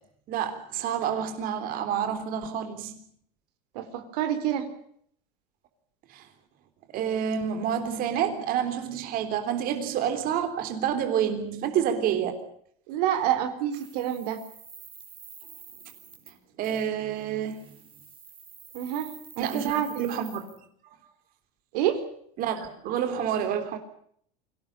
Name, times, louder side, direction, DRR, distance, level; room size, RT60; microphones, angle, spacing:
voice 1, 0.3-2.9 6.1-6.3 6.9-12.4 16.6-17.6 19.4-20.4 22.4-23.8, right 8 dB, 45° right, 3.5 m, -28 dB
voice 2, 3.7-4.7 12.9-14.4 18.7-19.9 21.7-22.0, right 11 dB, 75° right, 3.9 m, -27 dB
sound 1, 13.7-16.4 16.6-16.9 17.4-20.6, right 6 dB, 25° right, 4.8 m, -49 dB
25.0 x 17.5 x 10.0 m
supercardioid pair, 135°, 20 cm